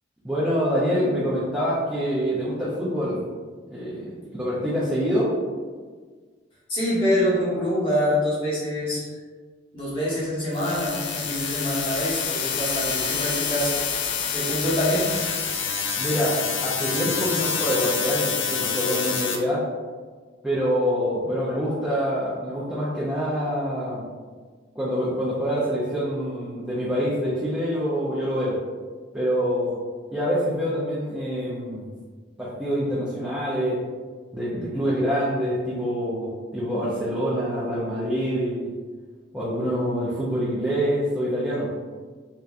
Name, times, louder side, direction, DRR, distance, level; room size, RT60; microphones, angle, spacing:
voice 1, 0.2-3.2 3.7-5.4 16.0-19.7 20.4-24.1 24.7-28.6 29.1-29.8 30.1-31.8 32.4-33.8 34.3-38.7 39.3-41.7, equal, 5° right, -10 dB, 0.5 m, -26 dB
voice 2, 6.7-9.1 9.7-13.7 14.3-15.1, equal, 25° left, -8 dB, 1.0 m, -25 dB
sound 1, 10.5-19.4, left 6 dB, 75° left, 0.4 m, -27 dB
3.4 x 2.8 x 2.4 m, 1.5 s
head